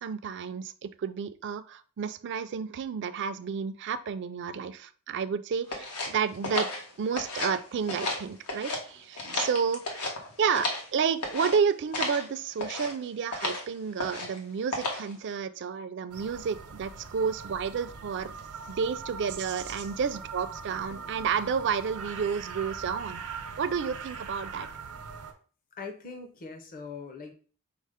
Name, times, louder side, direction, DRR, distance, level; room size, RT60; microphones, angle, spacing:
voice 1, 0.0-6.7 7.0-10.0 10.4-18.3 18.7-23.2 23.6-24.7, right 6 dB, 55° right, 12 dB, 0.4 m, -31 dB
sound 1, 5.7-7.6 7.8-8.8 9.1-10.9 11.2-11.6 11.9-12.2 12.6-12.9 13.3-13.6 14.0-14.4 14.7-15.1, left 2 dB, 90° left, 1.1 m, -33 dB
sound 2, 16.1-25.3, right 5 dB, 85° right, 0.8 m, -41 dB
voice 2, 25.8-27.3, left 4 dB, 40° left, 4 dB, 0.6 m, -41 dB
5.3 x 2.1 x 4.8 m, 0.41 s
head